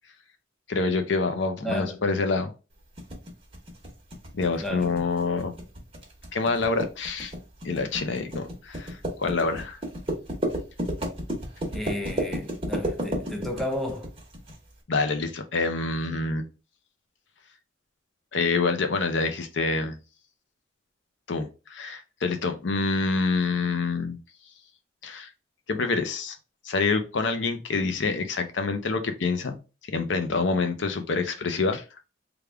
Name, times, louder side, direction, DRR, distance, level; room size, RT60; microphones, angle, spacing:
voice 1, 0.7-2.5 4.3-5.5 6.3-7.3 7.6-9.8 14.9-16.5 18.3-20.0 21.3-24.2 25.0-25.3 25.7-26.4 26.6-29.6 29.9-32.0, left 4 dB, 70° left, 0.6 m, -27 dB
voice 2, 1.6-2.0 4.6-5.0 11.7-14.1, left 1 dB, ahead, 0.5 m, -33 dB
sound 1, 3.0-14.6, equal, 30° right, 1.0 m, -32 dB
3.5 x 2.4 x 3.3 m
head